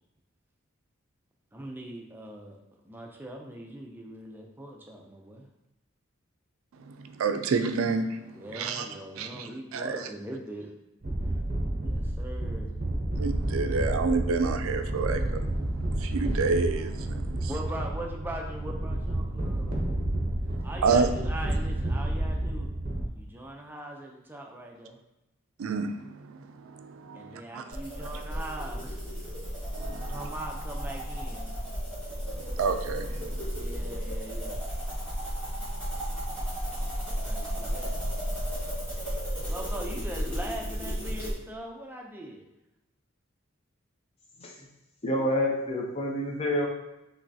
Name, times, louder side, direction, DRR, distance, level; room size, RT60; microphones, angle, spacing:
voice 1, 1.5-2.6 2.8-5.5 8.3-10.7 11.8-12.7 17.5-19.9 20.6-22.7 23.2-25.0 27.1-29.0 29.9-31.5 33.5-34.6 37.1-38.0 39.5-42.5, right 1 dB, 10° right, 0 dB, 0.5 m, -41 dB
voice 2, 6.8-8.9 9.2-10.1 13.2-17.5 20.5-21.1 25.6-27.6 28.0-28.1 29.7-30.3 32.4-33.4, right 4 dB, 80° right, 8 dB, 0.4 m, -30 dB
sound 1, 11.0-23.1, right 1 dB, 45° right, 0.7 m, -30 dB
sound 2, 27.7-41.3, equal, 5° left, 1.6 m, -33 dB
voice 3, 45.0-46.7, left 1 dB, 30° left, -1 dB, 0.7 m, -28 dB
5.7 x 3.0 x 2.7 m, 0.93 s
head